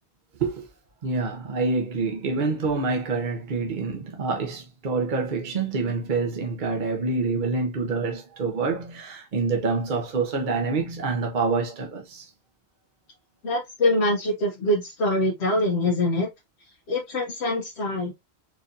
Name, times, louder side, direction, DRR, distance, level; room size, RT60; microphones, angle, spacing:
voice 1, 1.0-12.3, right 4 dB, 50° right, 0.9 m, -27 dB
voice 2, 13.4-16.3 16.9-18.1, left 1 dB, 80° left, 1.1 m, -24 dB
4.4 x 2.8 x 2.5 m
omnidirectional pair, 1.1 m